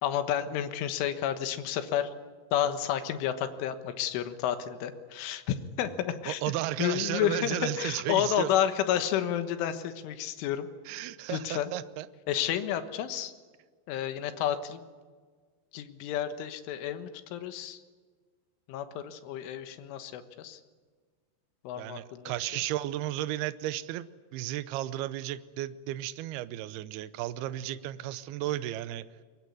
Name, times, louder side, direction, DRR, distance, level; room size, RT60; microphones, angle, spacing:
voice 1, 0.0-2.1 2.5-6.4 6.8-10.7 11.3-11.7 12.3-13.3 13.9-14.8 15.7-17.8 18.7-20.6 21.7-22.3, left 10 dB, 85° left, 9 dB, 3.9 m, -31 dB
voice 2, 6.3-8.5 10.9-12.1 21.8-24.1 24.3-29.1, right 14 dB, 80° right, 14 dB, 2.3 m, -34 dB
22.5 x 22.0 x 9.6 m, 1.5 s
omnidirectional pair, 5.5 m